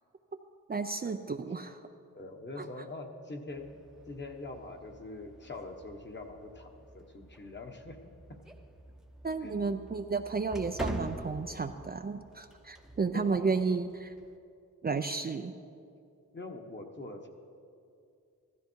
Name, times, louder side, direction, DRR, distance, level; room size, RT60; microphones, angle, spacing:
voice 1, 0.7-1.8 2.6-2.7 9.2-14.1 14.8-15.5, right 4 dB, 30° right, 7 dB, 0.5 m, -32 dB
voice 2, 2.1-3.8 4.1-8.4 9.4-9.5 13.1-13.5 16.3-17.3, left 2 dB, 35° left, 3 dB, 1.4 m, -44 dB
sound 1, 3.5-14.4, right 1 dB, ahead, 0.9 m, -46 dB
15.0 x 13.0 x 4.6 m, 2.5 s
cardioid pair, 85°, 33 cm